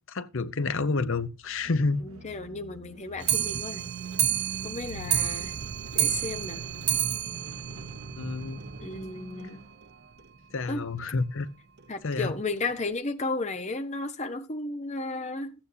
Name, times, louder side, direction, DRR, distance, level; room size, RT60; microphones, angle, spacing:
voice 1, 0.1-2.0 8.2-8.6 10.5-11.5 12.0-12.3, left 3 dB, 60° left, 0.7 m, -29 dB
sound 1, 1.4-10.2, right 2 dB, 75° right, 0.9 m, -43 dB
voice 2, 2.0-3.8 4.6-5.6 5.9-6.6 8.8-9.6 10.7-10.8 11.9-15.5, left 3 dB, 30° left, 0.9 m, -34 dB
Clock, 3.2-8.7 9.0-9.1 9.4-9.5 9.8-9.9 10.2-10.3 11.0-11.1 11.8-11.9 12.6-12.7, right 11 dB, 50° right, 0.6 m, -30 dB
14.5 x 8.8 x 2.7 m
head